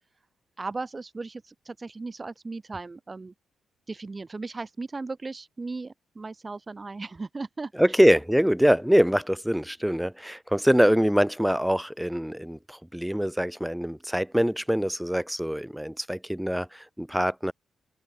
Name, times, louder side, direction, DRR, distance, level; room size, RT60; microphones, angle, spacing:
voice 1, 0.6-3.3 3.9-8.0, right 3 dB, 30° right, 6.5 m, -37 dB
voice 2, 7.7-17.5, equal, 5° right, 1.6 m, -24 dB
supercardioid pair, 55°, 0 cm